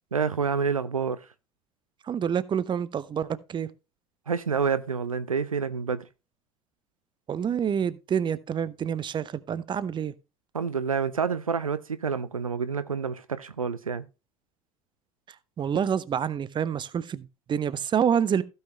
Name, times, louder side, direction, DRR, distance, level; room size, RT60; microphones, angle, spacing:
voice 1, 0.1-1.2 4.3-6.1 10.5-14.0, right 6 dB, 85° right, 0.5 m, -28 dB
voice 2, 2.1-3.7 7.3-10.1 15.6-18.4, right 8 dB, 25° right, 0.7 m, -27 dB
16.0 x 5.7 x 3.0 m
figure-of-eight pair, 65°, 17 cm